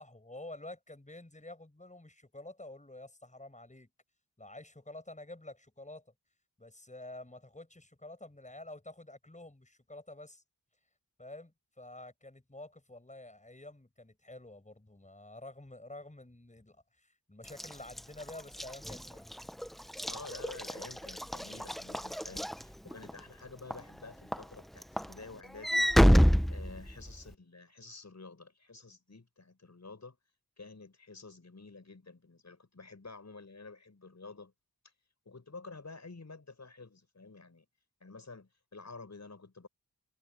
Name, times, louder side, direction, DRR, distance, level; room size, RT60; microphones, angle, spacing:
voice 1, 0.0-3.9 4.4-6.1 6.6-10.4 11.2-19.3, left 2 dB, 20° left, 6.1 m, -49 dB
Walk footsteps / Slam, 17.5-23.2 23.7-24.0 24.3-27.3, equal, ahead, 0.5 m, -28 dB
voice 2, 20.1-26.0 26.5-30.2 30.6-34.5 35.3-37.6 38.0-39.7, left 3 dB, 50° left, 6.0 m, -50 dB
wide cardioid pair, 80°, 36 cm